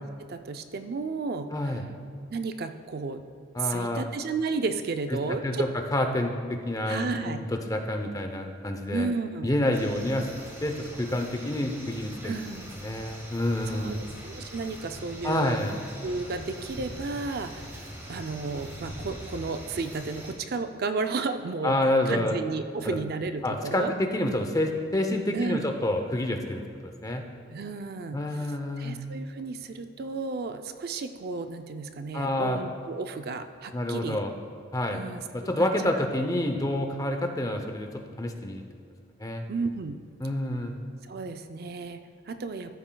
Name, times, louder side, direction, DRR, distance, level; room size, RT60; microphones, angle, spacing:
voice 1, 0.0-1.8 2.3-3.2 3.6-5.7 6.9-7.4 8.9-9.5 12.2-12.7 13.7-14.0 14.2-15.6 16.0-21.8 22.1-23.9 25.3-25.7 27.5-28.2 28.8-34.2 34.9-35.7 39.5-40.0 41.0-42.7, right 4 dB, 55° right, 8 dB, 0.4 m, -33 dB
voice 2, 1.5-1.9 3.5-4.1 5.1-9.1 9.4-10.3 10.6-12.3 12.8-14.0 15.2-15.8 21.6-22.3 22.8-23.0 23.4-27.2 28.1-29.0 32.1-32.6 33.7-34.3 34.7-35.0 35.3-38.6 39.2-39.4 40.2-40.7, left 1 dB, 20° left, 4 dB, 0.6 m, -28 dB
sound 1, 9.7-20.3, equal, 15° right, 1.3 m, -42 dB
14.0 x 9.0 x 2.3 m, 2.4 s
head